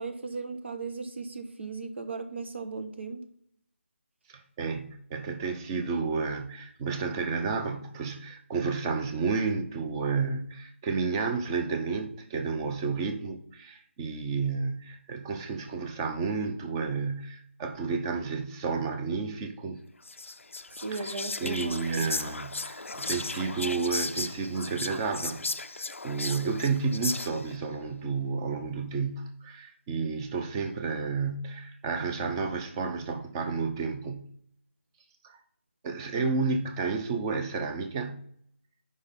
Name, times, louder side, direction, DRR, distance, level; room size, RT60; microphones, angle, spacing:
voice 1, 0.0-3.2 20.8-22.1 36.1-36.2, right 4 dB, 60° right, 1.3 m, -37 dB
voice 2, 4.3-19.8 20.9-34.3 35.2-35.4 35.8-38.2, right 4 dB, 20° right, 0.8 m, -31 dB
Whispering, 20.0-27.6, left 3 dB, 80° left, 0.5 m, -36 dB
8.4 x 5.3 x 4.3 m
figure-of-eight pair, 155°, 7 cm